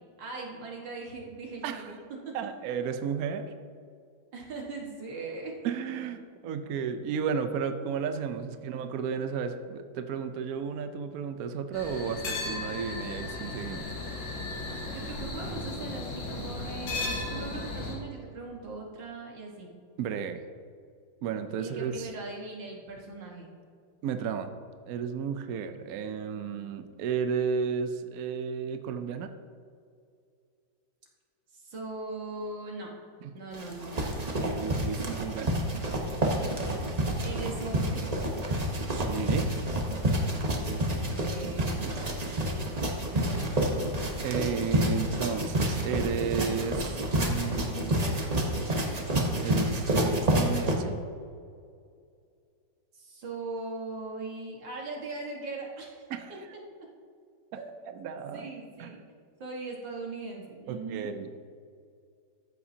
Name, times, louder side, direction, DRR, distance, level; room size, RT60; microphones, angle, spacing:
voice 1, 0.2-2.0 2.3-2.4 4.3-5.5 14.8-19.7 21.6-23.5 31.5-32.9 33.3-34.0 36.6-36.9 37.2-38.1 40.8-42.0 43.1-43.5 52.9-56.0 56.3-56.4 56.8-56.9 57.6-57.7 58.3-59.0 59.4-61.1, right 3 dB, 85° right, -1 dB, 2.2 m, -39 dB
voice 2, 2.3-3.5 5.6-13.9 20.0-20.4 21.2-22.1 24.0-24.5 24.9-29.3 33.2-33.3 34.2-35.6 37.2-37.3 38.9-39.5 44.2-48.1 49.4-51.0 56.1-56.4 57.5-58.5 58.8-58.9 60.7-61.4, right 6 dB, 65° right, 8 dB, 0.9 m, -33 dB
sound 1, 11.7-18.0, left 2 dB, 85° left, 2.3 m, -35 dB
sound 2, 33.5-50.8, right 1 dB, 30° right, 0.8 m, -29 dB
13.5 x 8.5 x 2.8 m, 2.2 s
omnidirectional pair, 2.0 m